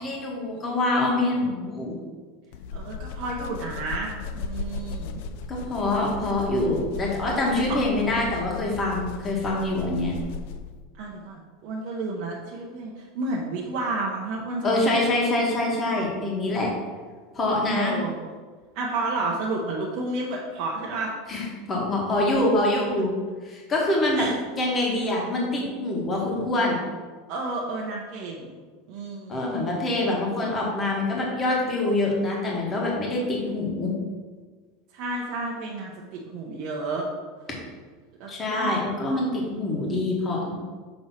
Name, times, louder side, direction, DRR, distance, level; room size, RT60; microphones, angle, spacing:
voice 1, 0.0-1.9 5.5-10.1 14.6-16.7 17.3-17.9 21.3-23.1 23.4-24.3 24.5-26.8 29.3-34.0 38.3-40.5, left 2 dB, 20° left, -2 dB, 1.4 m, -25 dB
sound 1, 2.5-10.8, left 5 dB, 60° left, 0.4 m, -36 dB
voice 2, 2.7-5.2 11.0-15.1 17.7-18.3 18.7-21.1 24.1-24.3 27.3-28.6 28.9-29.7 34.9-37.1 38.2-38.8, right 2 dB, 50° right, -2 dB, 0.8 m, -31 dB
6.2 x 3.2 x 5.6 m, 1.4 s
supercardioid pair, 155°, 0 cm